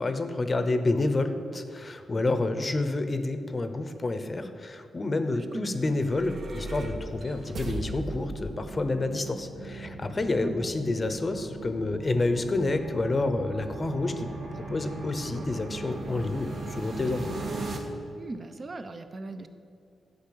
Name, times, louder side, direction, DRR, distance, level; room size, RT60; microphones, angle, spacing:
voice 1, 0.0-14.3 14.7-17.3, left 2 dB, 25° left, 9 dB, 0.8 m, -29 dB
voice 2, 5.5-5.9 10.4-10.7 18.1-19.5, right 2 dB, 30° right, 9 dB, 0.7 m, -38 dB
sound 1, 5.7-17.8, right 2 dB, 65° right, 1.8 m, -38 dB
12.0 x 5.4 x 8.6 m, 2.4 s
wide cardioid pair, 130°, 0 cm